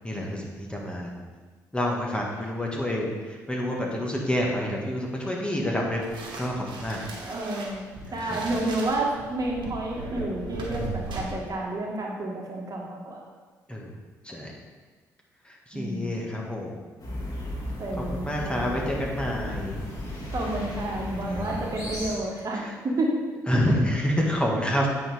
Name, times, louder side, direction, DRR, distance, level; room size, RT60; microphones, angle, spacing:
voice 1, 0.0-1.1 1.7-6.0 6.4-7.0 8.1-8.4 13.7-13.9 14.2-14.5 15.4-16.7 18.0-19.8 21.2-21.6 22.6-22.7 23.5-24.9, equal, 10° left, -2 dB, 1.7 m, -28 dB
sound 1, 6.0-11.2, right 2 dB, 60° right, 1.5 m, -37 dB
voice 2, 7.2-13.2 15.7-16.2 17.8-18.9 20.3-23.2, right 1 dB, 40° right, -2 dB, 1.7 m, -30 dB
sound 2, 17.0-22.1, left 1 dB, 40° left, 2.3 m, -35 dB
8.6 x 4.8 x 3.6 m, 1.4 s
hypercardioid pair, 45°, 9 cm